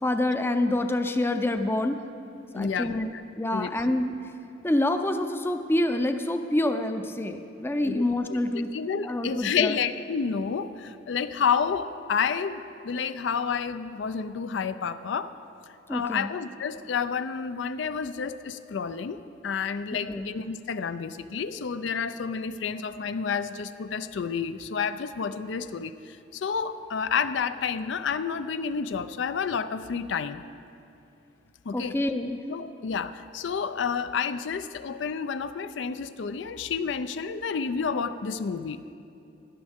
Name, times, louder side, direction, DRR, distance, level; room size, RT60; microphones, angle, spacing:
voice 1, 0.0-2.0 2.5-4.2 4.6-8.7 9.0-9.8 15.9-16.3 20.1-20.3 31.7-32.4, left 1 dB, 10° left, 7 dB, 0.5 m, -27 dB
voice 2, 2.5-3.2 3.5-4.0 7.8-15.3 15.9-30.4 31.7-32.0 32.5-38.8, left 6 dB, 70° left, 12 dB, 0.4 m, -30 dB
17.0 x 11.5 x 3.6 m, 2.8 s
head